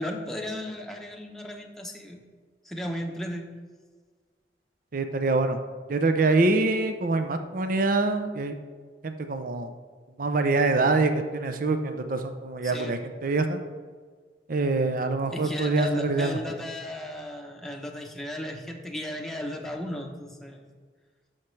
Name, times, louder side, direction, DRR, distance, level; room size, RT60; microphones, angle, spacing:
voice 1, 0.0-2.2 2.7-3.5 12.6-13.0 15.3-20.7, left 1 dB, ahead, 1 dB, 0.9 m, -35 dB
voice 2, 4.9-5.6 5.9-8.5 9.0-9.7 10.2-13.6 14.5-16.4, right 3 dB, 50° right, 7 dB, 0.6 m, -25 dB
13.0 x 5.8 x 3.3 m, 1.5 s
head